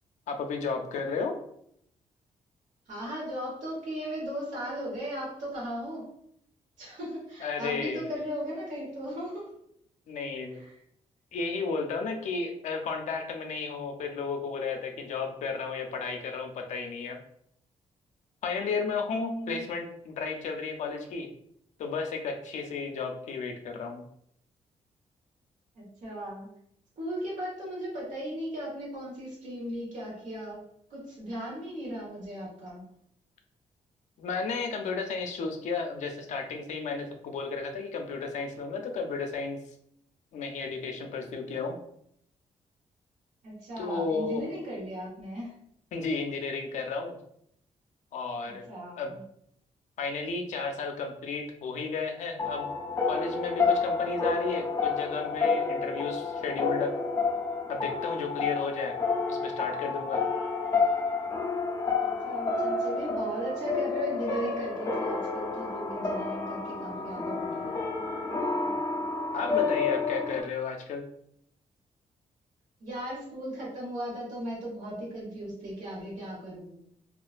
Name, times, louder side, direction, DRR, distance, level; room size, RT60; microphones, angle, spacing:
voice 1, 0.3-1.4 7.4-8.1 10.1-10.6 11.3-17.2 18.4-21.3 21.8-24.0 34.2-39.6 40.3-41.8 43.8-44.4 45.9-47.1 48.1-48.6 49.0-49.1 50.0-52.7 53.1-57.0 57.7-59.0 59.3-60.2 69.3-71.0, left 4 dB, 75° left, 4 dB, 0.4 m, -33 dB
voice 2, 2.9-6.1 6.8-9.5 10.5-10.7 19.1-19.6 25.7-26.5 27.0-30.6 30.9-32.8 43.4-45.6 48.4-49.2 62.0-67.8 72.8-76.8, equal, 85° right, -5 dB, 1.2 m, -37 dB
sound 1, 52.4-70.4, left 4 dB, 25° left, 0.5 m, -30 dB
2.4 x 2.2 x 2.4 m, 0.70 s
cardioid pair, 100°, 13 cm